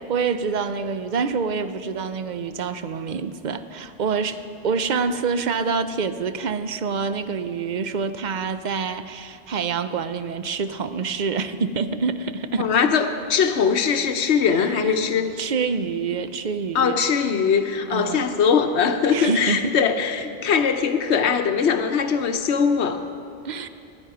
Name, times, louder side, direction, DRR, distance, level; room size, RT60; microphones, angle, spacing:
voice 1, 0.0-12.7 14.5-15.0 15.4-17.0 17.9-18.3 19.1-19.7 23.4-23.7, right 5 dB, 50° right, 11 dB, 0.7 m, -26 dB
voice 2, 12.6-15.3 16.7-23.0, left 6 dB, 85° left, 7 dB, 1.1 m, -21 dB
21.0 x 11.0 x 4.9 m, 2.5 s
omnidirectional pair, 1.1 m